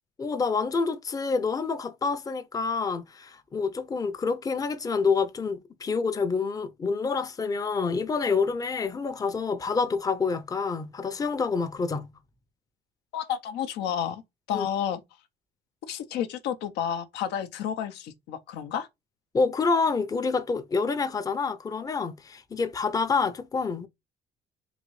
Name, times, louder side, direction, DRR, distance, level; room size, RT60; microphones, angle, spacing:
voice 1, 0.2-12.1 14.5-14.7 19.3-23.9, left 4 dB, 20° left, 0.5 m, -27 dB
voice 2, 13.1-14.2 14.5-15.0 15.9-18.9, left 9 dB, 85° left, 0.7 m, -31 dB
3.9 x 2.7 x 3.1 m
cardioid pair, 110°, 17 cm